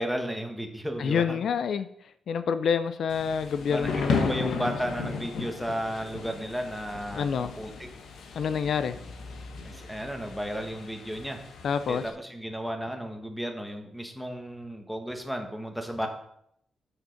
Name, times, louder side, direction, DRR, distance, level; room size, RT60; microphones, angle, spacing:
voice 1, 0.0-1.4 3.7-7.9 9.6-11.4 11.9-16.1, equal, ahead, 4 dB, 1.2 m, -34 dB
voice 2, 1.0-1.9 2.3-4.7 7.2-7.5 8.4-9.0 11.6-12.0, left 6 dB, 65° left, 12 dB, 0.4 m, -27 dB
Thunder / Rain, 3.1-12.1, left 4 dB, 85° left, 1.2 m, -35 dB
7.1 x 6.6 x 5.7 m, 0.72 s
wide cardioid pair, 155°, 0 cm